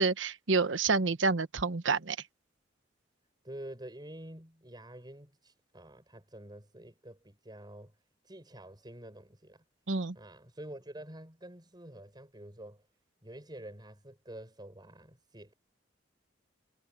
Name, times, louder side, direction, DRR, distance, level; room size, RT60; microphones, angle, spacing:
voice 1, 0.0-2.2 9.9-10.1, right 4 dB, 85° right, 1.1 m, -28 dB
voice 2, 3.4-7.9 8.2-9.6 10.1-12.8 13.2-15.5, right 1 dB, 25° right, 6.0 m, -48 dB
head